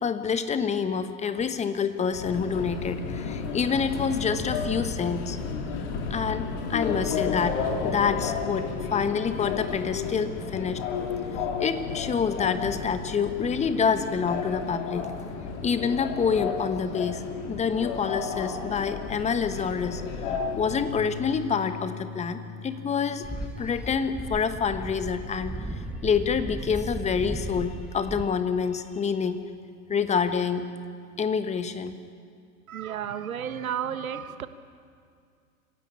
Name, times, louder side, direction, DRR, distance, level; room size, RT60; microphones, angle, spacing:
voice 1, 0.0-5.4 6.1-10.8 11.6-15.1 15.5-17.2 17.5-20.0 20.5-23.3 23.6-29.4 29.9-30.7 31.2-31.9, left 6 dB, 15° left, 10 dB, 1.2 m, -27 dB
Subway metro underground, 2.1-21.4, left 5 dB, 50° left, 3.2 m, -32 dB
Bass guitar, 20.9-27.1, left 5 dB, 70° left, 3.7 m, -44 dB
sound 1, 23.2-28.3, right 1 dB, 5° right, 1.1 m, -36 dB
voice 2, 32.7-34.5, right 8 dB, 70° right, 12 dB, 1.4 m, -32 dB
26.5 x 16.0 x 8.5 m, 2.3 s
figure-of-eight pair, 100°, 43 cm